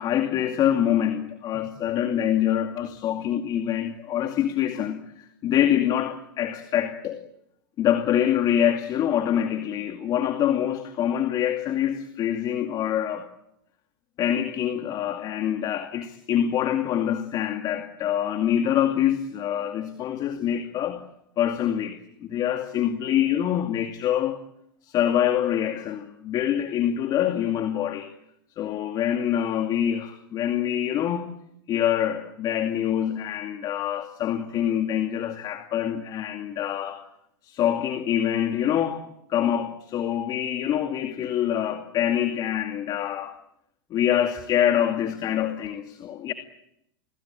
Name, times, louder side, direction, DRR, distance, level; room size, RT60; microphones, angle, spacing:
voice 1, 0.0-7.2 7.8-13.3 14.2-21.0 21.4-24.4 24.8-28.1 28.6-31.3 31.7-37.0 37.4-39.0 39.3-43.3 43.9-46.3, left 10 dB, 35° left, 2.4 m, -25 dB
29.0 x 20.5 x 8.9 m
hypercardioid pair, 120°, 12 cm